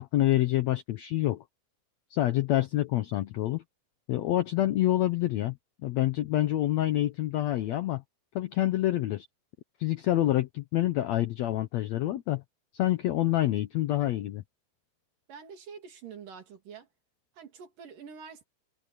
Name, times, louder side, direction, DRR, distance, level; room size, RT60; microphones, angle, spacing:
voice 1, 0.0-1.4 2.1-3.6 4.1-5.6 5.8-8.0 8.3-9.3 9.8-12.4 12.7-14.4, left 14 dB, 85° left, 1.5 m, -27 dB
voice 2, 15.3-16.9 17.3-18.5, right 6 dB, 70° right, 4.2 m, -46 dB
omnidirectional pair, 4.1 m